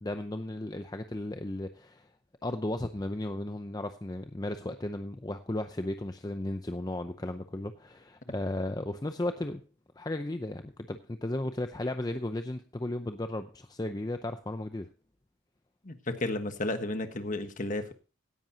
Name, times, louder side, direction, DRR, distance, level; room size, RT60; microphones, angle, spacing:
voice 1, 0.0-2.1 2.4-9.6 10.0-14.9, left 1 dB, 20° left, 8 dB, 0.6 m, -35 dB
voice 2, 15.8-17.9, left 2 dB, 40° left, 8 dB, 1.4 m, -33 dB
17.0 x 10.5 x 2.8 m, 0.33 s
head